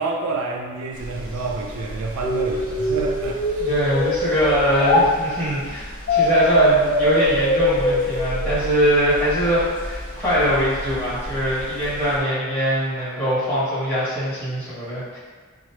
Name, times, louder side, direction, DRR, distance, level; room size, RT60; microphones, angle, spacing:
voice 1, 0.0-3.7, right 3 dB, 80° right, 1 dB, 0.3 m, -28 dB
sound 1, 0.9-12.2, equal, 40° right, 0.7 m, -35 dB
sound 2, 2.2-5.0 6.1-9.1, equal, 40° left, 0.3 m, -22 dB
voice 2, 3.6-15.2, equal, 10° left, -13 dB, 1.5 m, -22 dB
2.8 x 2.0 x 3.1 m, 1.5 s
head